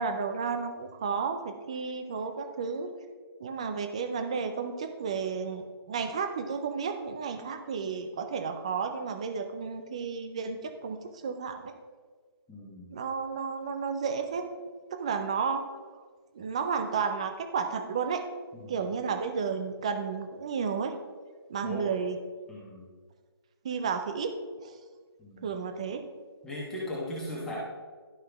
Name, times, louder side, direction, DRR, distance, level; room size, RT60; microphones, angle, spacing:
voice 1, 0.0-2.9 3.4-11.7 12.9-14.5 14.9-15.6 16.3-18.2 18.7-20.9 21.5-22.2 23.6-24.3 24.6-24.8 25.4-26.0, right 5 dB, 15° right, 7 dB, 0.3 m, -32 dB
voice 2, 12.5-12.9 18.5-18.9 21.6-21.9 22.5-22.9 25.2-25.5 26.4-27.6, left 1 dB, 5° left, -7 dB, 1.2 m, -38 dB
11.5 x 5.6 x 3.4 m, 1.5 s
hypercardioid pair, 165°, 13 cm